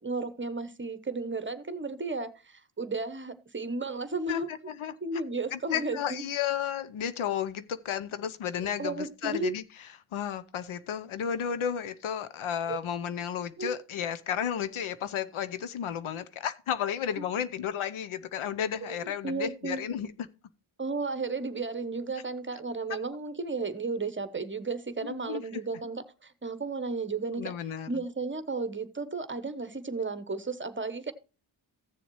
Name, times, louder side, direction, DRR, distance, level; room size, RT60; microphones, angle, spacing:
voice 1, 0.0-4.5 5.0-6.2 8.8-9.6 12.7-12.8 13.6-13.8 17.2-17.3 18.8-19.8 20.8-27.5 27.9-31.1, right 3 dB, 25° right, 0.9 m, -34 dB
voice 2, 4.3-4.9 5.5-9.6 10.1-20.1 25.0-25.6 27.4-28.0, left 9 dB, 75° left, 0.8 m, -33 dB
15.0 x 7.1 x 3.1 m
cardioid pair, 65°, 49 cm